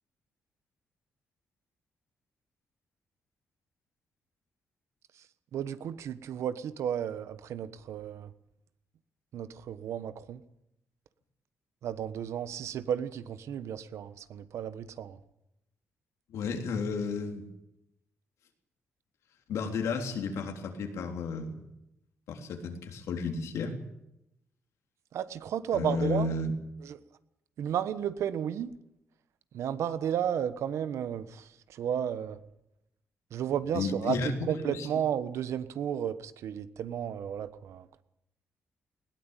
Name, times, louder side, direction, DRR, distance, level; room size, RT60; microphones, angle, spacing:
voice 1, 5.5-8.3 9.3-10.4 11.8-15.2 25.1-26.3 26.8-27.0 27.6-28.7 29.5-32.4 33.3-34.2 34.5-38.0, right 9 dB, 75° right, 14 dB, 1.2 m, -33 dB
voice 2, 16.3-17.5 19.5-21.5 22.3-23.8 25.7-26.5 33.7-34.3 34.6-34.9, left 4 dB, 85° left, 4 dB, 3.6 m, -32 dB
20.0 x 17.5 x 9.1 m, 0.86 s
cardioid pair, 130°, 5 cm